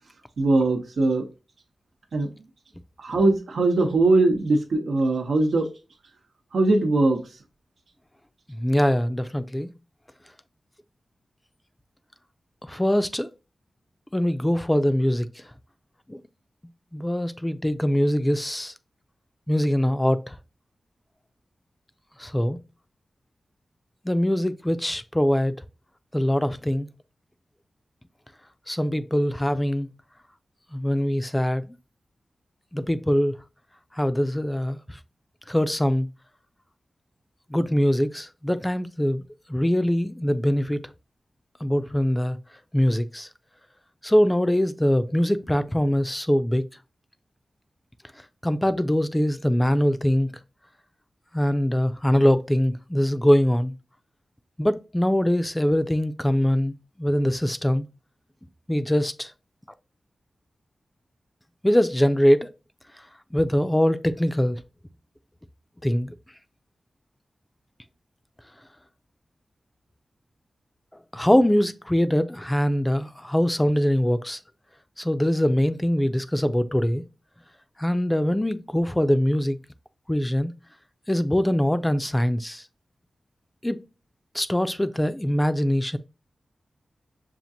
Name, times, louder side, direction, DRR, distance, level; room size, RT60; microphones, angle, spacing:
voice 1, 0.4-1.2 2.1-2.3 3.0-5.7 6.5-7.2, right 2 dB, 90° right, 0.9 m, -21 dB
voice 2, 8.5-9.7 12.7-13.3 14.1-15.3 16.1-16.2 16.9-18.7 19.5-20.4 22.2-22.6 24.1-25.5 26.1-26.9 28.7-29.9 30.7-31.6 32.7-33.3 34.0-34.8 35.5-36.1 37.5-39.2 39.5-40.8 41.6-42.4 42.7-43.3 44.0-46.7 48.4-50.3 51.3-53.7 54.6-57.8 58.7-59.3 61.6-62.5 63.3-64.6 65.8-66.1 71.1-74.4 75.0-77.0 77.8-79.6 80.1-80.5 81.1-82.6 83.6-83.8 84.3-86.0, equal, 10° left, 0.4 m, -22 dB
5.7 x 2.5 x 2.7 m
wide cardioid pair, 70°, 0 cm